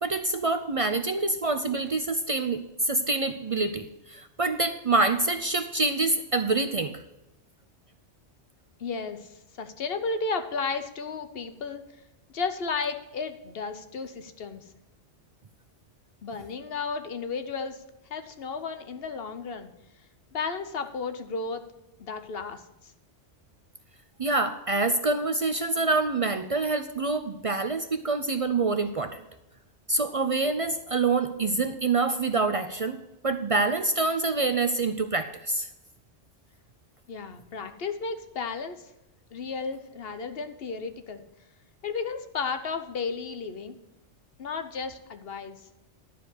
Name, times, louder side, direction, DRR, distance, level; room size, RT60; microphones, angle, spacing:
voice 1, 0.0-7.0 24.2-29.2 29.9-33.0 33.2-35.7, right 3 dB, 50° right, 9 dB, 0.4 m, -26 dB
voice 2, 8.8-11.8 12.3-14.6 16.2-17.8 18.1-19.7 20.3-21.6 22.0-22.6 37.1-38.9 39.3-41.2 41.8-43.8 44.4-45.6, left 4 dB, 55° left, 8 dB, 1.0 m, -33 dB
12.0 x 4.8 x 8.0 m, 0.95 s
omnidirectional pair, 1.2 m